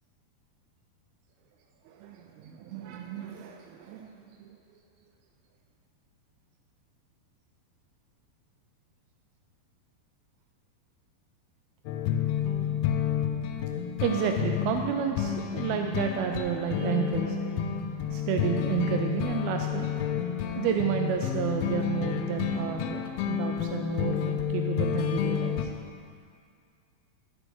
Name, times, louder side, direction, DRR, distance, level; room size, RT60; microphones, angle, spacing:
voice 1, 1.9-4.6 14.0-17.4 18.1-19.9 20.6-25.7, right 8 dB, 85° right, 3 dB, 2.3 m, -31 dB
sound 1, 11.9-25.7, left 9 dB, 80° left, 2.1 m, -30 dB
11.0 x 6.1 x 5.2 m, 2.2 s
omnidirectional pair, 4.6 m